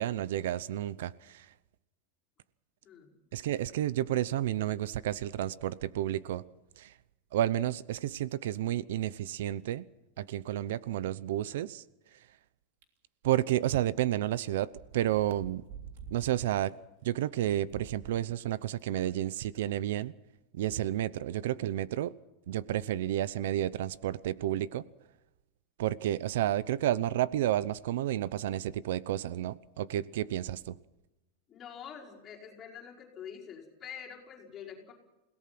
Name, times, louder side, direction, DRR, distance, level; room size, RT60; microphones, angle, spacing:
voice 1, 0.0-1.5 3.3-6.4 6.8-6.9 7.3-9.9 10.2-11.8 13.2-15.6 16.1-16.8 17.0-20.1 20.5-22.1 22.5-24.8 25.8-30.8, right 13 dB, 70° right, 0.7 m, -31 dB
voice 2, 2.8-3.1 21.1-21.5 31.5-34.9, left 8 dB, 20° left, 5.1 m, -46 dB
sound 1, 12.8-12.9 13.4-13.5 14.4-14.5 14.7-16.2 16.6-16.7 17.5-18.2 18.8-18.9 19.5-19.6, right 7 dB, 55° right, 3.3 m, -47 dB
29.5 x 17.5 x 6.0 m
supercardioid pair, 175°, 0 cm